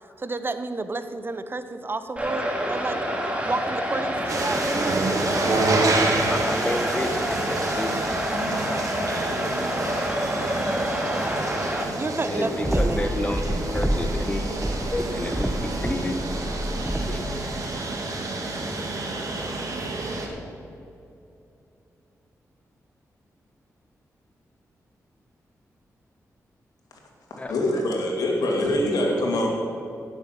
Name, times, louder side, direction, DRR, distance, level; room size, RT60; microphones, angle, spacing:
voice 1, 0.2-3.0 3.5-5.0 12.0-13.3, right 3 dB, 35° right, 10 dB, 0.7 m, -30 dB
sound 1, 2.2-11.8, equal, 20° right, 2.2 m, -27 dB
sound 2, 4.3-20.3, right 2 dB, 60° right, 1.9 m, -29 dB
voice 2, 6.3-8.0 12.3-13.4 13.7-14.6 14.9-16.2 17.1-17.3 27.4-27.5, left 2 dB, 20° left, 7 dB, 1.0 m, -30 dB
sound 3, 12.6-14.2 14.5-17.3, equal, 5° right, 1.0 m, -27 dB
voice 3, 27.3-29.5, left 1 dB, 85° left, 0 dB, 2.4 m, -24 dB
16.0 x 7.1 x 5.8 m, 2.7 s
cardioid pair, 60°, 6 cm